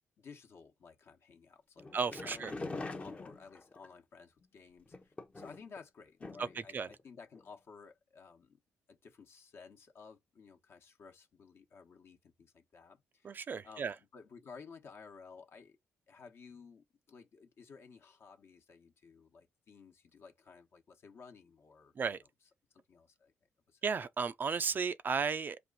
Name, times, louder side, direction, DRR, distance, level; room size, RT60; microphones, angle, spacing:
voice 1, 0.2-8.6 8.9-13.4 13.6-15.8 16.1-21.9 22.7-23.3 23.7-23.8, left 5 dB, 55° left, 1.1 m, -55 dB
sound 1, 1.8-3.9 4.9-5.8 6.2-6.6 6.9-7.0 7.3-7.4, left 2 dB, 25° left, 0.7 m, -43 dB
voice 2, 1.9-2.5 6.4-6.5 6.7-6.9 13.2-13.9 22.0-22.2 23.8-25.6, right 5 dB, 40° right, 0.4 m, -34 dB
4.2 x 2.5 x 3.8 m
cardioid pair, 100°, 5 cm